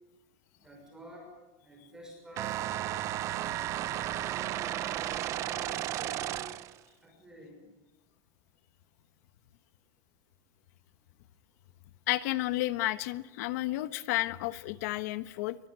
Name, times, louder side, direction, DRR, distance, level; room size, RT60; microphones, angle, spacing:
voice 1, 0.6-1.3 1.6-2.9 3.4-4.6 5.1-6.5 7.0-7.7, equal, 5° right, 1 dB, 6.3 m, -50 dB
sound 1, 2.4-6.8, right 13 dB, 30° right, 0.9 m, -34 dB
voice 2, 12.1-15.6, left 17 dB, 65° left, 13 dB, 1.4 m, -31 dB
26.0 x 23.5 x 9.6 m, 1.0 s
supercardioid pair, 175°, 9 cm